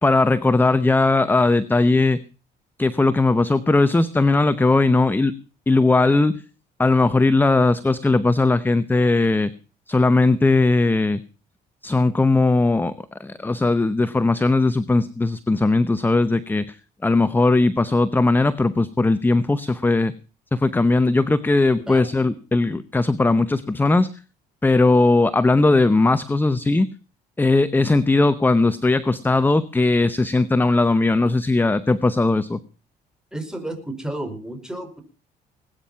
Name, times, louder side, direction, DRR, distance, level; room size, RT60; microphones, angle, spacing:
voice 1, 0.0-2.2 2.8-5.3 5.7-6.4 6.8-9.5 9.9-11.2 11.8-16.8 17.0-20.1 20.5-24.1 24.6-26.9 27.4-32.6, left 3 dB, 10° left, 14 dB, 0.8 m, -18 dB
voice 2, 33.3-35.0, right 1 dB, 5° right, 5 dB, 5.1 m, -32 dB
20.5 x 9.3 x 5.7 m, 0.37 s
cardioid pair, 110°, 17 cm